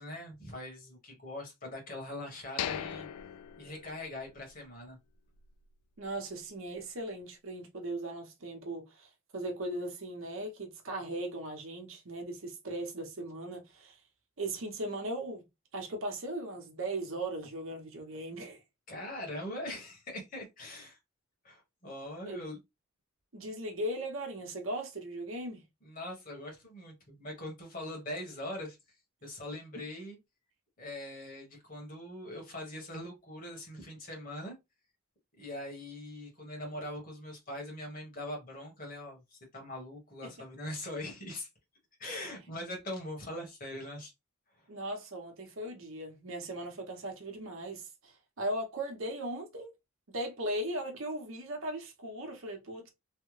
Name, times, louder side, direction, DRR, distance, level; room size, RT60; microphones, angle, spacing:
voice 1, 0.0-3.1 3.6-5.0 18.9-21.0 21.4-22.6 25.8-28.8 29.2-30.2 30.8-34.6 35.4-41.5 42.0-44.1, left 1 dB, 40° left, 1.4 m, -42 dB
sound 1, 2.6-4.5 4.8-4.9 5.4-5.6, left 10 dB, 85° left, 0.3 m, -39 dB
voice 2, 6.0-14.0 14.4-15.5 15.7-18.6 22.3-22.4 23.3-25.6 29.8-29.9 40.2-40.3 44.7-49.7 50.1-52.9, right 1 dB, 65° right, 1.0 m, -38 dB
3.2 x 2.2 x 3.2 m
head